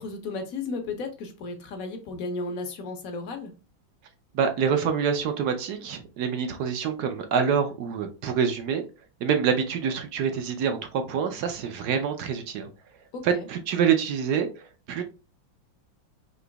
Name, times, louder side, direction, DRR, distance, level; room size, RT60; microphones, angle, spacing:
voice 1, 0.0-3.5 13.1-13.5, left 3 dB, 60° left, 1.0 m, -34 dB
voice 2, 4.3-8.8 9.2-12.7 13.2-15.0, right 7 dB, 65° right, 1.1 m, -26 dB
3.9 x 2.9 x 3.4 m
omnidirectional pair, 2.1 m